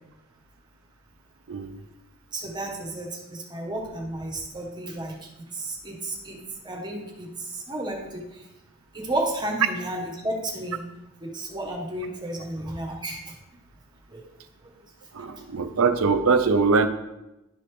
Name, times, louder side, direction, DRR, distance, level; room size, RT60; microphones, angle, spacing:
voice 1, 2.3-8.2 8.9-10.8 11.2-13.3 14.1-14.2, right 1 dB, 20° right, 0 dB, 1.4 m, -32 dB
voice 2, 15.1-16.9, right 4 dB, 80° right, 9 dB, 0.6 m, -22 dB
12.0 x 4.2 x 3.3 m, 0.95 s
head